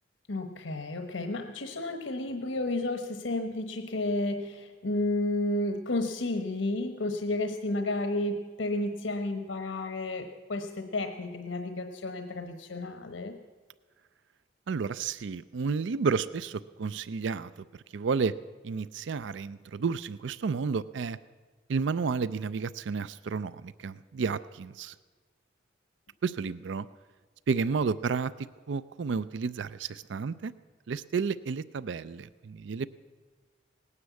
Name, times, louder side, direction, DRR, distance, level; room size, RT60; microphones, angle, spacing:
voice 1, 0.3-13.4, left 2 dB, 85° left, 6 dB, 1.0 m, -32 dB
voice 2, 14.7-17.5 17.9-18.3 18.6-21.2 21.7-24.9 26.2-26.9 27.5-30.5 30.9-32.9, right 5 dB, 75° right, 17 dB, 0.4 m, -31 dB
18.5 x 9.7 x 8.2 m, 1.4 s
head